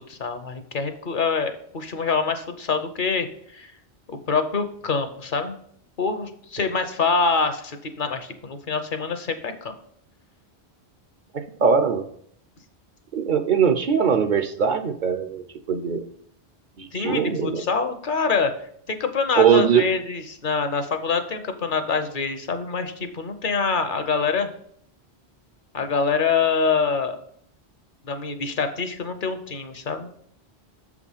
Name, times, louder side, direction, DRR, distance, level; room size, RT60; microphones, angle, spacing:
voice 1, 0.1-3.7 4.1-5.6 6.0-9.7 16.9-18.5 18.9-24.5 25.7-27.2 28.0-30.1, left 5 dB, 55° left, 8 dB, 0.9 m, -25 dB
voice 2, 11.6-12.1 13.1-16.1 16.8-17.6 19.4-19.8, right 6 dB, 55° right, 8 dB, 0.7 m, -21 dB
6.8 x 4.9 x 5.5 m, 0.64 s
omnidirectional pair, 1.1 m